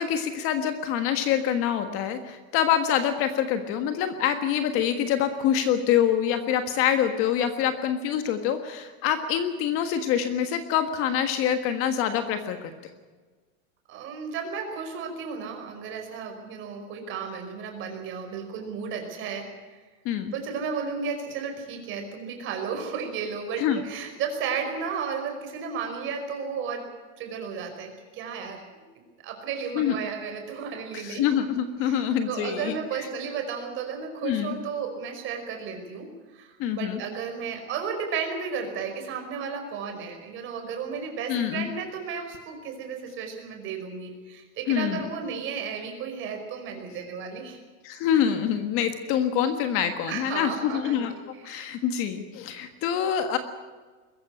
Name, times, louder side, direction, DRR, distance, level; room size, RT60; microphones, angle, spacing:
voice 1, 0.0-12.7 20.0-20.3 23.6-23.8 29.7-30.0 30.9-33.1 34.2-34.5 36.6-37.0 41.3-41.7 44.7-45.1 47.8-51.1 51.4-53.4, left 9 dB, 35° left, 8 dB, 1.5 m, -25 dB
voice 2, 13.9-19.8 20.3-26.9 27.2-28.6 29.2-31.3 31.8-47.6 50.1-51.6, right 6 dB, 30° right, 4 dB, 5.2 m, -34 dB
22.0 x 14.5 x 9.8 m, 1.4 s
supercardioid pair, 160°, 39 cm